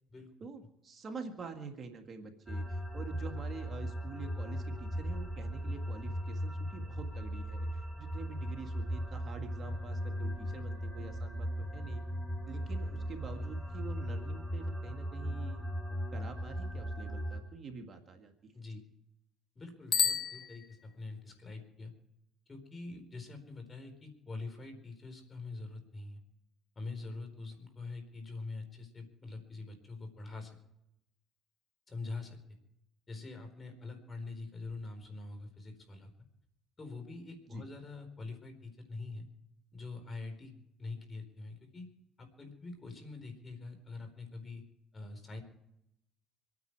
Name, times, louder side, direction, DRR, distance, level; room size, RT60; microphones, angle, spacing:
voice 1, 0.4-12.0 12.5-15.7 16.1-18.5 37.5-37.6, right 5 dB, 40° right, 4 dB, 2.1 m, -47 dB
sound 1, 2.5-17.4, equal, ahead, 4.3 m, -38 dB
voice 2, 19.5-21.9 22.5-26.2 26.8-30.6 31.9-32.4 33.1-36.1 36.8-39.3 39.7-40.5 40.8-41.9 42.2-44.7 44.9-45.4, left 3 dB, 30° left, 7 dB, 4.5 m, -44 dB
Bicycle bell, 19.9-21.2, left 6 dB, 45° left, 1.3 m, -32 dB
26.0 x 9.7 x 4.8 m, 0.80 s
supercardioid pair, 90°, 0 cm